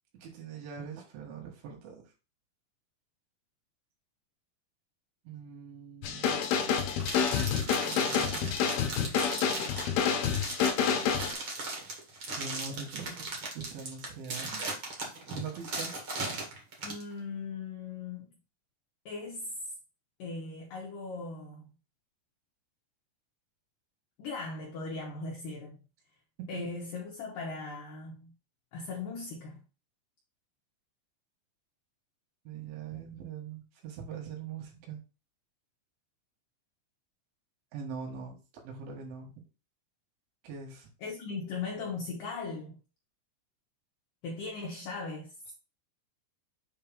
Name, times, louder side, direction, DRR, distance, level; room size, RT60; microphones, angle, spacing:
voice 1, 0.2-2.0 5.3-6.5 7.4-8.7 12.4-14.7 15.3-15.9 32.5-35.0 37.7-38.4 38.6-39.3 40.4-40.9, right 6 dB, 75° right, 4.1 m, -42 dB
sound 1, 6.0-11.3, left 7 dB, 75° left, 2.3 m, -28 dB
sound 2, 7.0-17.0, right 3 dB, 60° right, 1.3 m, -38 dB
voice 2, 16.8-18.3 19.1-19.5 20.2-21.7 24.2-25.8 26.5-28.3 28.7-29.6 41.0-42.8 44.2-45.3, left 4 dB, 90° left, 1.9 m, -38 dB
7.9 x 2.8 x 5.4 m
omnidirectional pair, 5.5 m